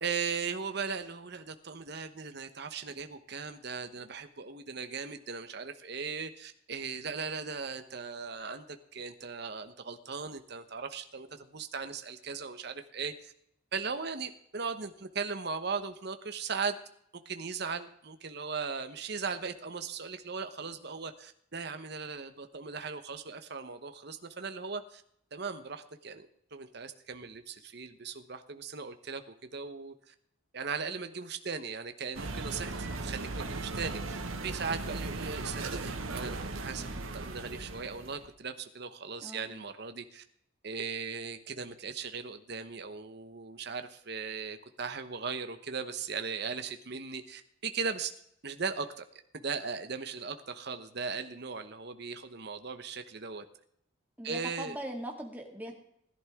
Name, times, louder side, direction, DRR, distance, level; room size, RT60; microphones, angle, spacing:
voice 1, 0.0-13.3 13.7-16.8 17.1-25.0 25.3-30.1 30.5-40.2 40.6-48.1 48.4-53.4 54.2-54.8, right 5 dB, 55° right, 8 dB, 1.0 m, -38 dB
sound 1, 32.1-38.3, right 3 dB, 85° right, 1.3 m, -37 dB
voice 2, 39.2-39.5 54.2-55.8, right 1 dB, 10° right, 1 dB, 2.1 m, -40 dB
20.0 x 11.5 x 3.6 m, 0.71 s
head